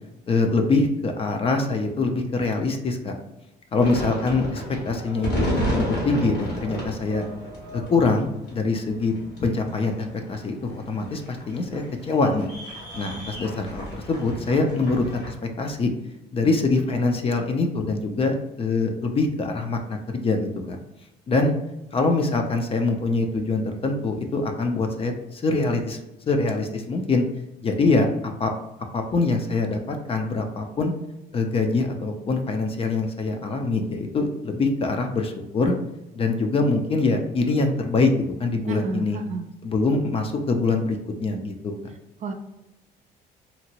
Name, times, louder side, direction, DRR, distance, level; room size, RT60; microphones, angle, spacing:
voice 1, 0.3-3.2 3.7-5.5 5.8-7.3 7.7-9.1 9.4-12.5 12.9-15.9 16.3-20.8 21.3-21.5 21.9-26.0 26.3-27.2 27.6-28.1 28.4-28.5 28.9-30.9 31.3-35.8 36.1-38.1 38.4-39.2 39.6-41.7, left 3 dB, 35° left, 4 dB, 0.5 m, -24 dB
sound 1, 3.8-15.3, equal, 80° left, 1.4 m, -32 dB
voice 2, 38.7-39.5 42.2-42.3, right 4 dB, 45° right, 6 dB, 0.4 m, -31 dB
2.8 x 2.5 x 2.8 m, 0.93 s
cardioid pair, 110°, 17 cm